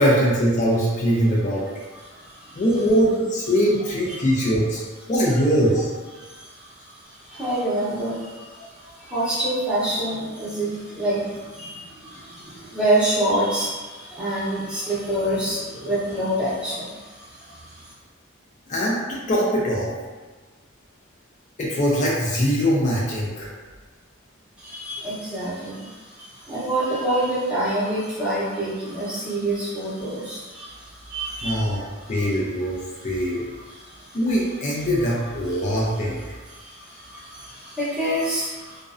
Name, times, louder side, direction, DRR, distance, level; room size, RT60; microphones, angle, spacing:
voice 1, 0.0-1.6 2.6-4.8 5.1-5.9 18.7-19.9 21.6-23.5 31.4-31.8 32.1-32.8 33.0-33.5 34.1-36.2, equal, 35° left, -5 dB, 0.4 m, -21 dB
voice 2, 1.9-2.6 6.1-17.9 24.6-32.3 33.6-34.2 35.6-35.8 36.5-38.8, right 1 dB, 5° right, -10 dB, 0.7 m, -27 dB
2.5 x 2.0 x 2.4 m, 1.3 s
head